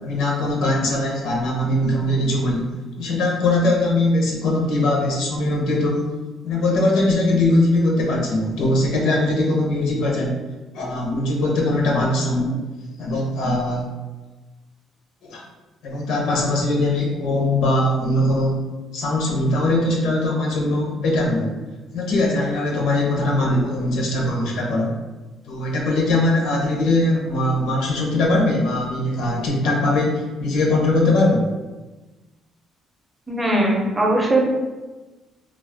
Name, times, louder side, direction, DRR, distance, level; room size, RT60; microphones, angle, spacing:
voice 1, 0.0-2.7 3.0-6.1 6.4-10.4 10.7-12.6 13.0-13.9 15.2-15.4 15.8-18.6 18.9-21.6 21.9-24.9 25.5-31.5, left 1 dB, 85° left, -2 dB, 0.7 m, -21 dB
voice 2, 33.3-34.4, right 1 dB, 15° right, -2 dB, 0.5 m, -19 dB
2.3 x 2.1 x 3.4 m, 1.2 s
cardioid pair, 135°, 0 cm